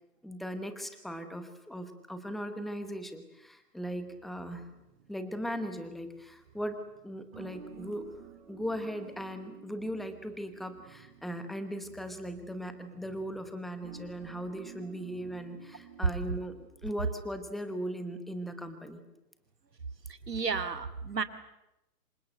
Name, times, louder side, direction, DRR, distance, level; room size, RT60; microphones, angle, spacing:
voice 1, 0.2-4.7 5.1-6.8 7.0-8.0 8.5-16.5 16.8-19.0, equal, ahead, 8 dB, 1.0 m, -38 dB
sound 1, 3.8-16.7, right 7 dB, 35° right, 4.7 m, -53 dB
voice 2, 20.1-21.2, right 5 dB, 90° right, 10 dB, 2.2 m, -33 dB
27.0 x 25.0 x 7.7 m, 0.92 s
hypercardioid pair, 145°, 47 cm